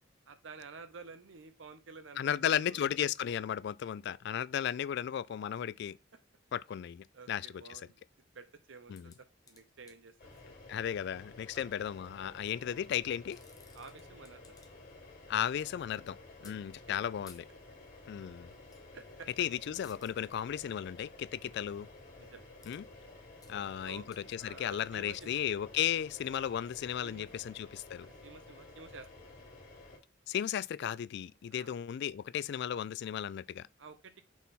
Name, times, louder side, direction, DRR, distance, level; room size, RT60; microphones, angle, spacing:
voice 1, 0.3-2.9 7.1-8.0 8.3-9.1 9.5-10.4 11.5-11.6 13.7-14.4 16.4-16.5 18.9-19.3 20.5-20.6 22.2-22.5 23.5-24.1 24.4-25.4 27.0-27.3 28.0-29.1 31.5-31.7 33.8-34.2, right 4 dB, 80° right, 0.7 m, -51 dB
voice 2, 2.2-6.0 6.5-7.8 8.9-9.1 10.7-13.4 15.3-16.2 16.4-17.5 18.1-18.5 19.4-21.9 22.7-22.8 23.5-28.1 30.3-33.6, left 9 dB, 60° left, 0.3 m, -35 dB
sound 1, 8.9-10.4 12.2-12.5 13.1-14.9 15.2-15.8 16.4-16.6 17.3-17.4 18.7-18.9 19.2-19.4 19.8-20.1 22.6-22.8 23.1-23.5 24.1-24.2 24.6-27.2 27.8-27.9, left 5 dB, 20° left, 0.8 m, -60 dB
sound 2, 10.2-30.0, left 2 dB, 45° left, 2.5 m, -53 dB
6.2 x 3.7 x 4.1 m
head